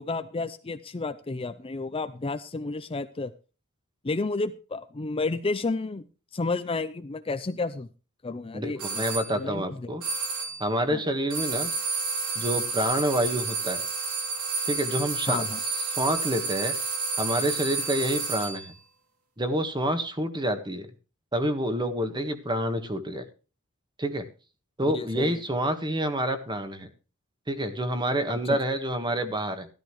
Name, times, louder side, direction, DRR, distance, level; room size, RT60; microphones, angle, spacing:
voice 1, 0.0-3.3 4.0-6.1 6.3-7.9 8.2-9.0 9.3-9.9 10.9-11.0 15.3-15.6 24.8-25.4 28.4-28.6, left 3 dB, 25° left, 10 dB, 0.5 m, -31 dB
voice 2, 8.5-10.0 10.6-11.7 12.3-13.8 14.7-15.4 16.0-16.7 17.2-18.7 19.4-20.9 21.3-23.2 24.0-24.3 24.8-26.9 27.5-29.7, right 1 dB, 20° right, 8 dB, 1.5 m, -28 dB
sound 1, 8.8-9.3 10.0-10.6 11.3-18.7, right 4 dB, 85° right, 3.0 m, -30 dB
13.5 x 13.5 x 3.1 m, 0.34 s
head